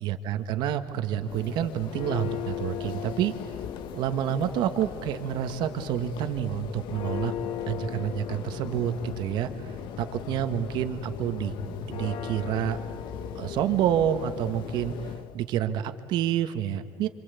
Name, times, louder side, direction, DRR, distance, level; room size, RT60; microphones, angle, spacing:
voice 1, 0.0-3.3 3.9-7.3 7.7-9.5 10.0-12.8 13.3-14.9 15.3-17.1, right 10 dB, 60° right, 9 dB, 1.7 m, -28 dB
Church bell, 1.1-15.3, left 8 dB, 65° left, 1.4 m, -37 dB
26.5 x 26.0 x 8.4 m, 2.3 s
cardioid pair, 135°, 9 cm